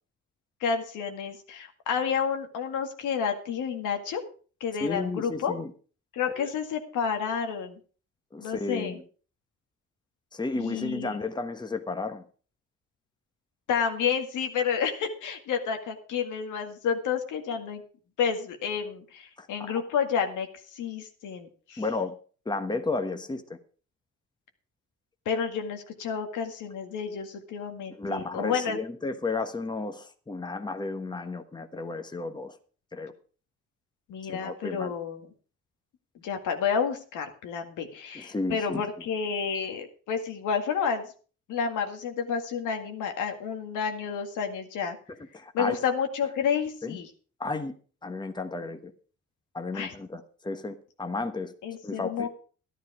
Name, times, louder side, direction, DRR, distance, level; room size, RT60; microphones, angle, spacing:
voice 1, 0.6-4.2 4.6-5.5 6.1-7.8 8.4-9.0 10.6-11.2 13.7-17.8 18.2-21.8 25.3-28.8 34.1-35.3 36.2-41.1 41.5-45.0 45.5-47.1 49.7-49.9 51.6-52.3, left 6 dB, 80° left, 5 dB, 1.9 m, -30 dB
voice 2, 4.8-5.7 6.4-6.5 8.3-9.0 10.3-12.2 19.4-19.7 21.8-22.2 22.4-23.6 27.9-32.6 32.9-33.1 34.2-34.9 38.1-38.8 45.3-45.8 46.8-47.0 47.4-47.7 48.0-48.9 49.5-51.5 51.8-52.3, left 3 dB, 15° left, 8 dB, 1.2 m, -33 dB
12.5 x 11.0 x 4.9 m, 0.40 s
cardioid pair, 90°, 30 cm